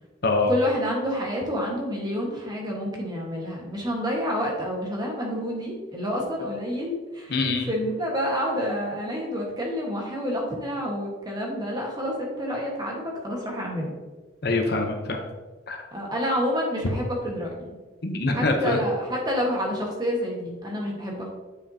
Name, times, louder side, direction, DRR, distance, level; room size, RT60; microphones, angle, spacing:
voice 1, 0.5-13.9 15.9-17.7 18.3-21.3, equal, 20° right, -2 dB, 1.4 m, -28 dB
voice 2, 7.3-7.7 14.4-15.2 15.7-15.8 18.0-18.8, left 3 dB, 55° left, 4 dB, 0.8 m, -24 dB
9.6 x 5.5 x 2.8 m, 1.2 s
head